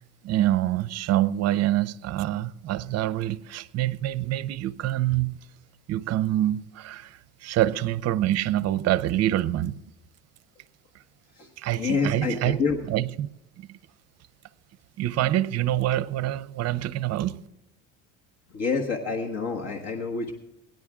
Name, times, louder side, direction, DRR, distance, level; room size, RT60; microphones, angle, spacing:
voice 1, 0.2-5.4 5.9-9.8 11.6-12.6 12.9-13.3 13.6-13.8 15.0-17.4, right 13 dB, 50° right, 0.6 m, -26 dB
voice 2, 11.3-12.9 18.5-20.3, left 4 dB, 50° left, 1.5 m, -28 dB
18.5 x 10.5 x 3.6 m
cardioid pair, 125°, 33 cm